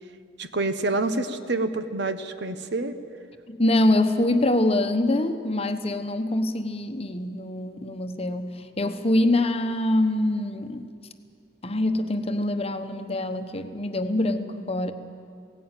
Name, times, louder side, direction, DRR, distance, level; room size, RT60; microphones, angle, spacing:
voice 1, 0.4-2.9, right 2 dB, 65° right, 10 dB, 1.1 m, -27 dB
voice 2, 3.5-10.9 11.6-14.9, left 1 dB, 35° left, 7 dB, 1.1 m, -24 dB
18.0 x 16.0 x 9.0 m, 2.3 s
head